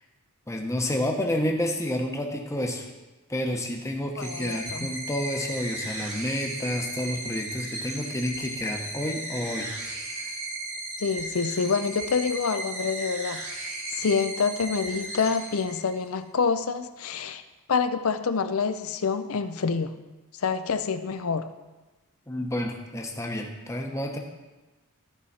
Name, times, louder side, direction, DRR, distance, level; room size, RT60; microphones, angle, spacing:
voice 1, 0.5-2.8 3.3-9.7 10.2-10.3 22.3-24.2, left 1 dB, 15° left, 2 dB, 0.9 m, -30 dB
voice 2, 4.2-4.9 11.0-13.4 13.9-17.4 17.7-19.9 20.4-21.4, left 5 dB, 65° left, 10 dB, 0.5 m, -27 dB
sound 1, 4.2-16.1, right 2 dB, 65° right, 2.1 m, -36 dB
13.5 x 4.9 x 4.2 m, 1.1 s
head